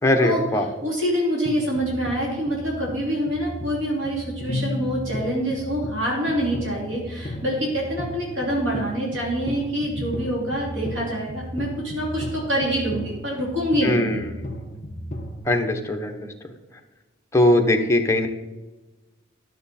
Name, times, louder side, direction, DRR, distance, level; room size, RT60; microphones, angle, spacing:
voice 1, 0.0-0.7 13.8-14.5 15.4-16.3 17.3-18.3, left 1 dB, 15° left, 4 dB, 1.0 m, -20 dB
voice 2, 0.8-14.2, equal, 65° right, -3 dB, 3.0 m, -26 dB
sound 1, 1.5-15.5, left 1 dB, 40° left, 1.8 m, -35 dB
13.0 x 7.0 x 4.2 m, 1.1 s
head